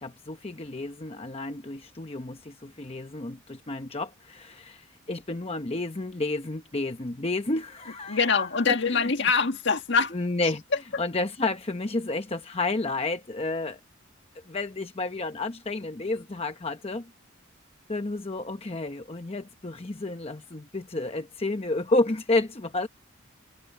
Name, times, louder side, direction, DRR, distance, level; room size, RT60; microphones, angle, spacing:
voice 1, 0.0-9.1 10.1-10.6 11.0-13.8 14.5-17.1 17.9-22.9, left 2 dB, 30° left, 0.9 m, -31 dB
voice 2, 8.1-10.1, left 5 dB, 60° left, 1.8 m, -24 dB
head